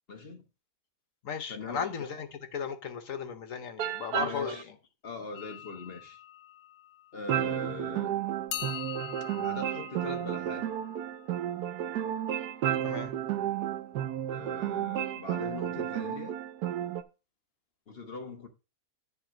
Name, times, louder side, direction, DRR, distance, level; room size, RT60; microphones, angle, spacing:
voice 1, 0.1-0.4 1.5-2.1 4.2-4.7 5.0-6.2 7.1-8.1 9.3-10.6 14.3-16.4 17.9-18.5, left 4 dB, 40° left, 1.3 m, -41 dB
voice 2, 1.2-4.7 12.8-13.1, left 6 dB, 60° left, 1.3 m, -36 dB
sound 1, 3.8-4.6 7.3-17.0, right 11 dB, 80° right, 1.2 m, -32 dB
sound 2, 5.3-7.8 8.5-12.4, left 10 dB, 85° left, 1.4 m, -44 dB
10.5 x 3.6 x 6.2 m
omnidirectional pair, 1.6 m